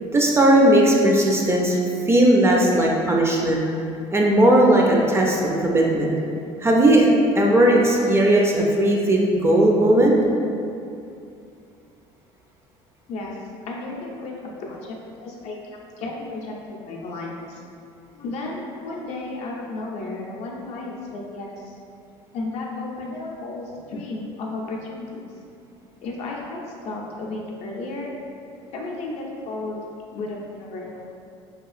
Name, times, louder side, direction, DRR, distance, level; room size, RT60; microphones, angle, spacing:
voice 1, 0.1-1.8 2.1-3.7 4.1-6.1 6.6-7.1 7.3-10.2, right 1 dB, 20° right, -2 dB, 0.4 m, -17 dB
voice 2, 13.7-14.3 14.6-17.6 18.1-21.8 22.3-25.3 26.0-28.1 28.7-29.9 30.1-31.1, left 2 dB, 60° left, -2 dB, 0.5 m, -33 dB
2.8 x 2.4 x 2.4 m, 2.5 s
supercardioid pair, 100°, 13 cm